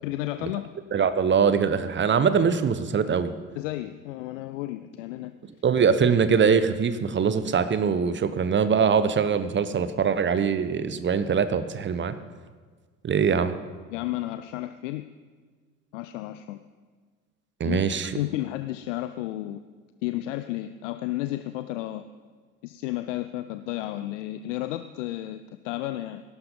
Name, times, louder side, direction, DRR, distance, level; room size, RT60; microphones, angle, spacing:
voice 1, 0.0-0.7 3.6-5.3 13.9-15.0 15.9-16.7 17.6-19.6 20.0-22.1 22.6-26.2, left 15 dB, 65° left, 11 dB, 0.6 m, -32 dB
voice 2, 0.9-3.3 5.6-12.1 13.0-13.6 17.6-18.1, right 6 dB, 30° right, 12 dB, 1.0 m, -22 dB
17.5 x 11.5 x 5.5 m, 1.5 s
figure-of-eight pair, 55°, 41 cm